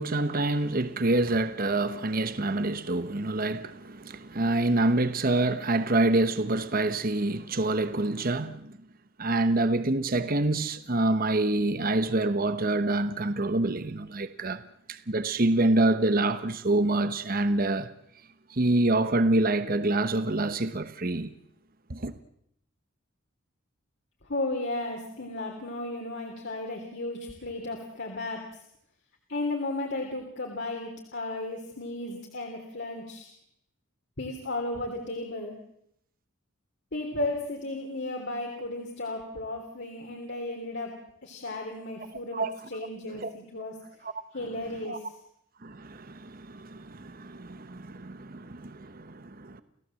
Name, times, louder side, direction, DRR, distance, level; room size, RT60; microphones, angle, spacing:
voice 1, 0.0-8.8 9.2-14.6 14.9-17.9 18.5-21.3 21.9-22.1 42.3-42.5 43.2-43.3 44.8-45.0 45.6-49.6, right 2 dB, 40° right, 1.0 m, -26 dB
voice 2, 24.3-28.6 29.3-33.3 34.2-35.6 36.9-43.8 44.3-45.2, left 2 dB, 55° left, 3.2 m, -34 dB
30.0 x 16.0 x 7.7 m
head